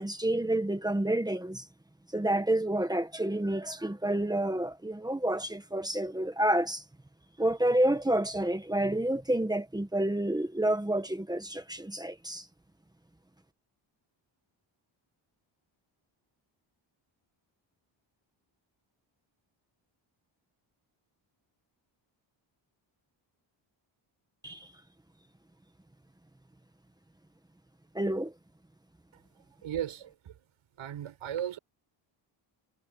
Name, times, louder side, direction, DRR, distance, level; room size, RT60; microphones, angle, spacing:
voice 1, 0.0-1.6 2.1-6.8 7.4-12.4 24.4-24.6 27.9-28.3, right 1 dB, 10° right, 1.3 m, -29 dB
voice 2, 29.6-30.0 30.8-31.6, right 10 dB, 85° right, 7.2 m, -34 dB
wide cardioid pair, 180°, 48 cm